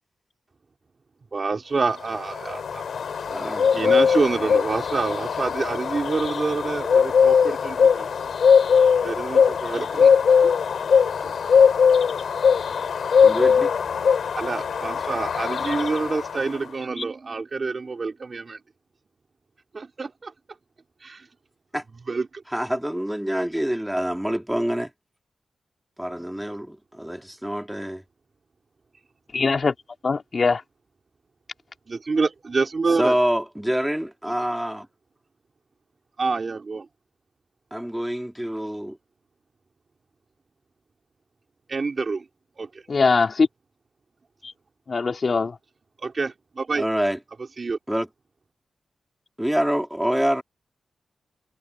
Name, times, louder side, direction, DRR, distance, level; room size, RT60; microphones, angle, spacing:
voice 1, 1.3-2.8 3.4-8.1 9.0-10.2 10.4-10.5 11.2-11.3 14.3-18.6 19.7-20.3 21.0-21.3 22.1-22.4 31.9-33.2 36.2-36.9 41.7-42.2 42.6-42.7 46.0-46.8 47.6-47.8, right 4 dB, 40° right, 2.9 m, -27 dB
sound 1, 2.0-16.6, left 6 dB, 75° left, 2.5 m, -20 dB
voice 2, 3.3-4.0 13.2-13.7 21.7-21.8 22.5-24.9 26.0-28.0 33.0-34.9 37.7-39.0 46.7-47.2 47.9-48.1 49.4-50.4, equal, 5° right, 2.6 m, -26 dB
voice 3, 29.3-29.7 30.0-30.6 42.9-43.5 44.9-45.5, left 4 dB, 45° left, 3.2 m, -21 dB
wide cardioid pair, 115°, 0 cm